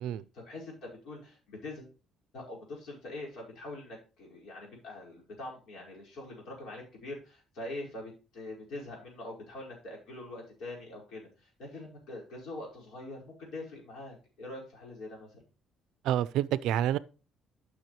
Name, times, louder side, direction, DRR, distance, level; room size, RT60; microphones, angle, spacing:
voice 1, 0.3-1.9 2.3-15.4, left 2 dB, 60° left, 5.1 m, -44 dB
voice 2, 16.0-17.0, right 11 dB, 80° right, 0.5 m, -28 dB
12.0 x 6.4 x 3.1 m
cardioid pair, 160°, 0 cm